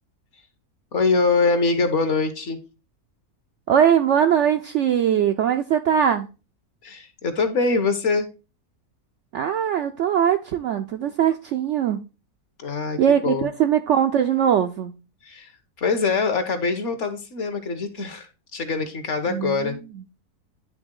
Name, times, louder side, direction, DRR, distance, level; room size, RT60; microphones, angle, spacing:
voice 1, 0.9-2.6 6.8-8.3 12.6-13.5 15.2-15.5 15.8-18.3 18.5-19.8, left 4 dB, 55° left, 1.2 m, -23 dB
voice 2, 3.7-6.3 9.3-12.0 13.0-14.9 19.3-19.7, right 9 dB, 70° right, 0.7 m, -21 dB
9.9 x 3.4 x 3.7 m
omnidirectional pair, 1.6 m